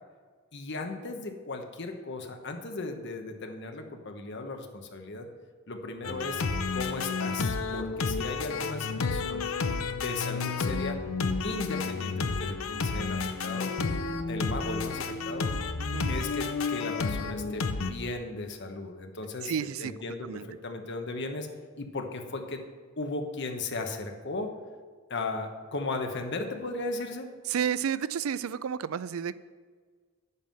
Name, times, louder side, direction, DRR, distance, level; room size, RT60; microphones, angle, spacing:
voice 1, 0.5-5.3 5.7-6.4 6.7-9.4 9.9-11.0 11.4-13.7 14.3-15.5 16.1-21.5 21.8-22.6 23.0-24.5 25.1-27.3, left 3 dB, 60° left, 4 dB, 1.1 m, -36 dB
sound 1, 6.0-17.9, left 4 dB, 80° left, 0.7 m, -31 dB
voice 2, 19.4-19.9 20.2-20.4 27.5-29.4, right 8 dB, 80° right, 17 dB, 0.4 m, -31 dB
9.8 x 5.6 x 7.6 m, 1.5 s
head